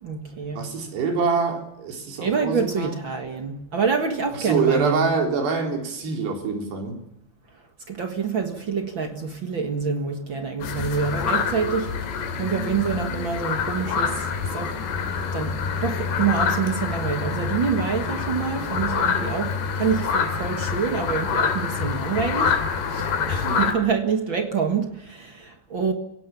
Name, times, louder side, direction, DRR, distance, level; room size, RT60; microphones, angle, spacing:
voice 1, 0.0-0.7 2.2-5.1 7.5-25.9, right 6 dB, 50° right, 1.4 m, -27 dB
voice 2, 0.6-3.0 4.3-7.0 23.4-23.7, right 5 dB, 90° right, 5.8 m, -25 dB
sound 1, 10.6-23.7, left 5 dB, 80° left, 4.6 m, -26 dB
28.5 x 17.0 x 7.1 m
omnidirectional pair, 4.6 m